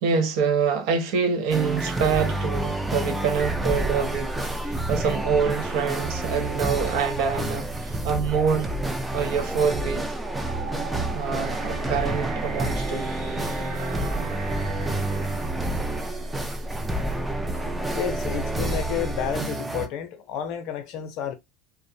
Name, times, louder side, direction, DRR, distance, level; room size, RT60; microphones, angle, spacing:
voice 1, 0.0-8.7 9.1-10.1 11.1-13.1, right 6 dB, 65° right, 0.7 m, -26 dB
sound 1, 1.5-19.9, right 2 dB, 10° right, 0.4 m, -29 dB
sound 2, 3.3-19.4, right 1 dB, 35° right, 1.0 m, -35 dB
sound 3, 10.2-17.3, right 6 dB, 85° right, 1.0 m, -39 dB
voice 2, 17.9-21.3, left 9 dB, 60° left, 0.6 m, -31 dB
2.4 x 2.0 x 2.6 m
supercardioid pair, 100°, 0 cm